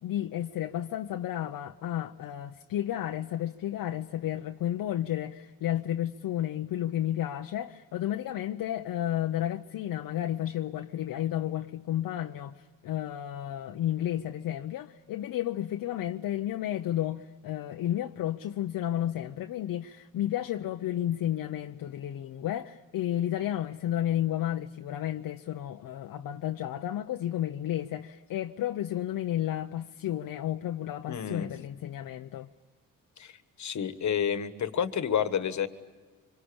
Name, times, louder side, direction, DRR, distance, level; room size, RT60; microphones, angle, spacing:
voice 1, 0.0-32.5, left 12 dB, 70° left, 0.8 m, -32 dB
voice 2, 31.1-31.5 33.2-35.7, left 8 dB, 50° left, 1.5 m, -30 dB
25.5 x 25.0 x 8.7 m
cardioid pair, 100°, 36 cm